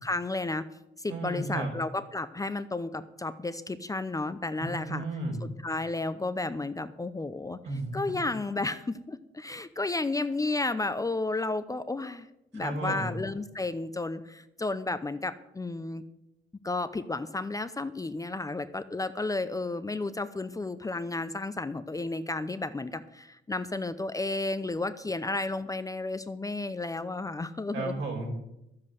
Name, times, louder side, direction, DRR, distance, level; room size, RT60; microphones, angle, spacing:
voice 1, 0.0-0.6 1.0-5.0 5.6-7.6 7.9-12.3 12.5-16.0 16.6-28.0, left 2 dB, 15° left, 11 dB, 0.6 m, -32 dB
voice 2, 1.1-1.7 4.6-5.4 7.6-7.9 12.5-13.1 27.7-28.3, right 2 dB, 70° right, -1 dB, 4.7 m, -33 dB
11.5 x 7.7 x 7.8 m, 0.88 s
cardioid pair, 90°, 20 cm